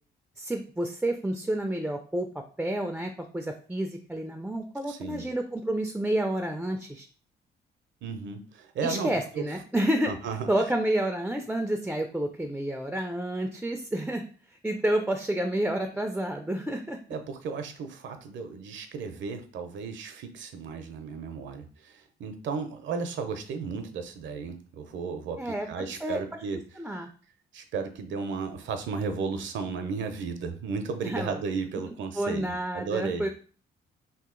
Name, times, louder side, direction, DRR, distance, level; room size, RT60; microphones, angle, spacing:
voice 1, 0.4-2.3 2.6-7.1 8.8-10.1 10.5-17.0 25.4-26.2 26.8-27.1 31.0-31.3 32.1-33.3, right 1 dB, 5° right, 5 dB, 0.3 m, -29 dB
voice 2, 4.9-5.3 8.0-9.4 10.1-10.5 17.1-26.6 27.5-33.3, right 5 dB, 70° right, 8 dB, 0.6 m, -34 dB
2.8 x 2.7 x 3.7 m, 0.41 s
cardioid pair, 90°, 20 cm